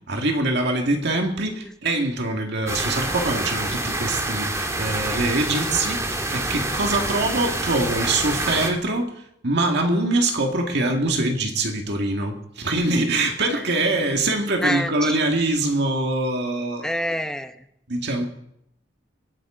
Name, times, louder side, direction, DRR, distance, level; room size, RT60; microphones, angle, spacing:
voice 1, 0.1-6.0 6.3-9.1 9.4-16.9 17.9-18.3, right 2 dB, 60° right, 2.0 m, -23 dB
sound 1, 2.7-8.7, right 2 dB, 15° right, 1.6 m, -27 dB
voice 2, 14.6-15.2 16.8-17.5, equal, 5° left, 0.8 m, -27 dB
26.0 x 9.3 x 3.8 m
head